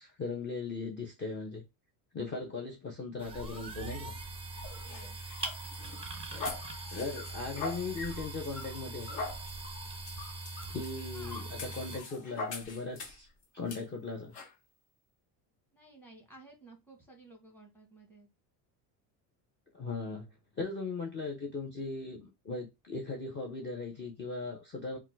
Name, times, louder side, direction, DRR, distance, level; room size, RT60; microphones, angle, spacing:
voice 1, 0.0-1.6 2.1-4.2 6.9-9.1 10.7-13.3 13.5-14.3 19.7-20.3 20.6-25.0, left 3 dB, 25° left, 0.8 m, -38 dB
sound 1, 3.2-12.0, right 3 dB, 15° right, 0.7 m, -42 dB
sound 2, 4.6-13.3 13.7-13.8 14.3-14.5, left 3 dB, 65° left, 1.3 m, -43 dB
voice 2, 4.8-5.2 11.1-11.5 15.7-18.3, right 2 dB, 5° left, 1.4 m, -55 dB
3.7 x 2.3 x 4.5 m
cardioid pair, 135°, 40 cm